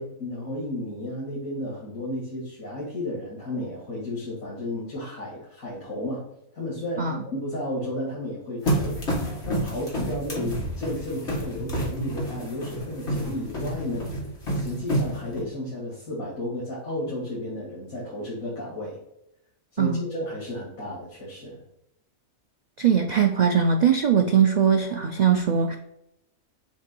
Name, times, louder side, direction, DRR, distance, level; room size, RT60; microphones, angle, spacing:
voice 1, 0.0-6.2 6.5-14.1 14.5-19.0 19.7-21.6, left 1 dB, 80° left, -6 dB, 2.6 m, -33 dB
sound 1, 8.6-15.4, right 1 dB, 55° left, 2.2 m, -29 dB
voice 2, 22.8-25.8, right 7 dB, 80° right, 5 dB, 0.3 m, -21 dB
7.2 x 2.9 x 4.5 m, 0.80 s
omnidirectional pair, 1.4 m